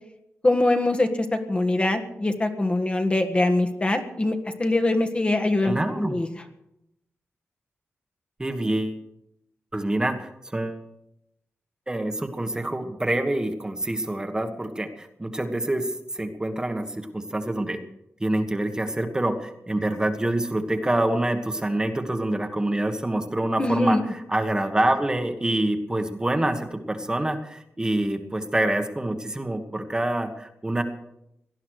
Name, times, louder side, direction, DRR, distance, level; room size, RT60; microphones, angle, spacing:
voice 1, 0.4-6.3 23.6-24.1, left 2 dB, 25° left, 6 dB, 1.5 m, -23 dB
voice 2, 5.6-6.2 8.4-9.0 9.7-10.8 11.9-17.8 18.2-24.0 24.3-30.8, right 1 dB, 15° right, 5 dB, 1.4 m, -26 dB
18.0 x 12.0 x 6.4 m, 0.83 s
wide cardioid pair, 140°, 5 cm